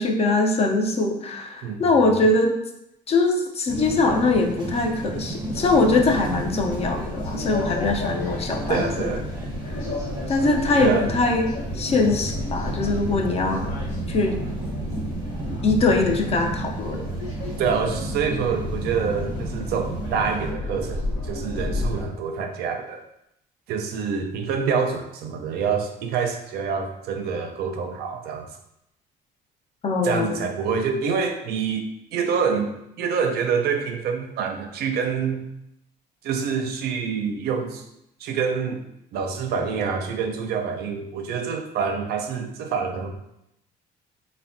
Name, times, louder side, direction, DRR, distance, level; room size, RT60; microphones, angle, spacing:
voice 1, 0.0-2.6 3.1-9.1 10.3-13.6 14.1-14.4 15.6-17.0 29.8-30.5, left 3 dB, 35° left, 3 dB, 0.4 m, -22 dB
voice 2, 1.6-2.2 8.7-9.2 10.8-11.1 17.6-23.0 23.7-28.5 30.0-35.5 36.2-37.8 38.2-38.8 39.1-43.1, right 6 dB, 70° right, 4 dB, 0.4 m, -26 dB
sound 1, 3.7-20.5, right 2 dB, 25° right, 0.7 m, -33 dB
sound 2, 5.5-22.1, left 1 dB, 85° left, 0.8 m, -32 dB
3.3 x 2.1 x 2.5 m, 0.82 s
cardioid pair, 110°, 17 cm